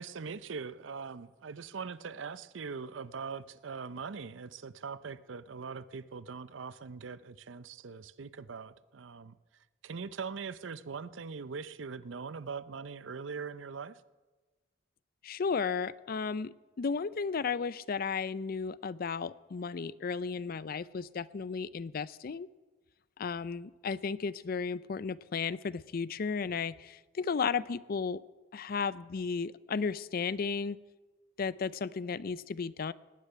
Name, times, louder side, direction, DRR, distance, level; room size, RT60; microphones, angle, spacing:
voice 1, 0.0-9.4 9.8-14.0, right 5 dB, 85° right, 17 dB, 0.6 m, -41 dB
voice 2, 15.2-22.5 23.2-28.2 28.5-30.8 31.4-32.9, left 5 dB, 50° left, 19 dB, 0.4 m, -34 dB
18.0 x 6.7 x 9.8 m, 1.2 s
head